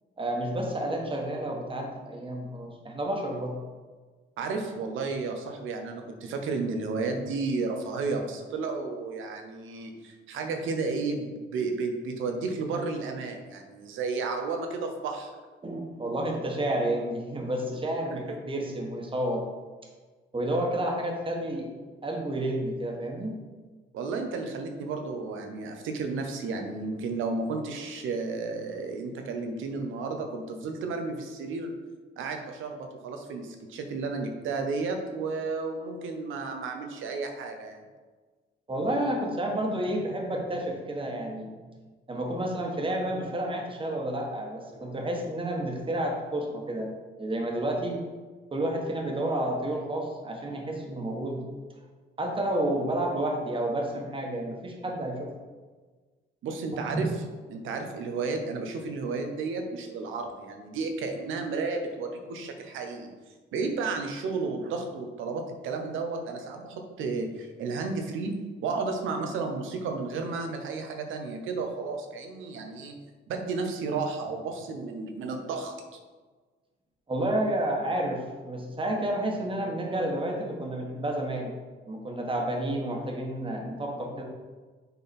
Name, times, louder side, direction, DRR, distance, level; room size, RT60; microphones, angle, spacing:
voice 1, 0.2-3.5 15.6-19.4 20.3-21.7 22.0-23.4 38.7-41.5 42.1-46.9 47.2-48.0 48.5-51.4 52.2-55.3 56.8-57.0 77.1-81.5 81.9-84.2, right 1 dB, 25° right, 0 dB, 1.5 m, -30 dB
voice 2, 4.4-15.3 18.1-18.2 23.9-31.7 32.2-37.8 56.4-57.1 57.5-63.1 63.5-68.4 68.6-75.7, right 4 dB, 85° right, 4 dB, 1.0 m, -32 dB
7.0 x 4.0 x 4.4 m, 1.4 s
cardioid pair, 90°, 20 cm